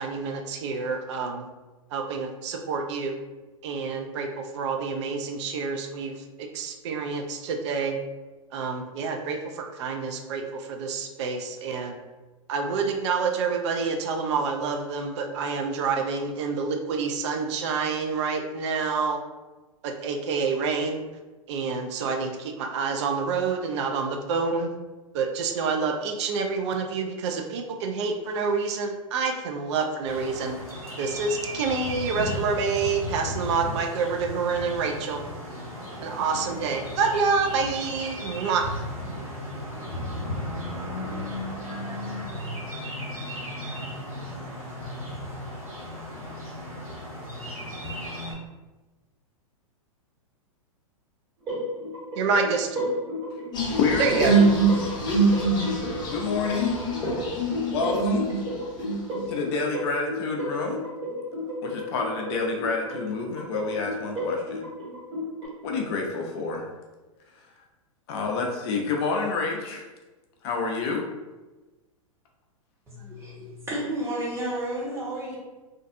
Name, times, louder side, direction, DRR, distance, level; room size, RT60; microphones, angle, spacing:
voice 1, 0.0-1.5 1.9-3.1 3.6-4.3 4.5-8.0 8.5-11.9 12.5-19.2 19.8-21.0 21.5-24.7 25.1-30.6 31.0-35.2 36.0-38.6 52.2-52.7 54.0-54.3, right 5 dB, 55° right, 3 dB, 0.4 m, -27 dB
sound 1, 30.1-48.3, left 1 dB, 90° right, 1.1 m, -35 dB
sound 2, 51.4-65.5, left 1 dB, 30° right, 1.4 m, -33 dB
sound 3, 53.5-58.4 58.8-59.2, right 3 dB, 25° left, 0.8 m, -24 dB
voice 2, 53.8-54.5 56.1-56.8 57.7-58.3 59.3-60.8 61.6-64.6 65.6-66.7 68.1-69.9 70.4-71.0, left 4 dB, 50° left, 1 dB, 0.5 m, -28 dB
voice 3, 72.9-75.4, right 1 dB, 15° right, -6 dB, 1.0 m, -32 dB
2.5 x 2.3 x 2.5 m, 1.2 s
hypercardioid pair, 105°, 18 cm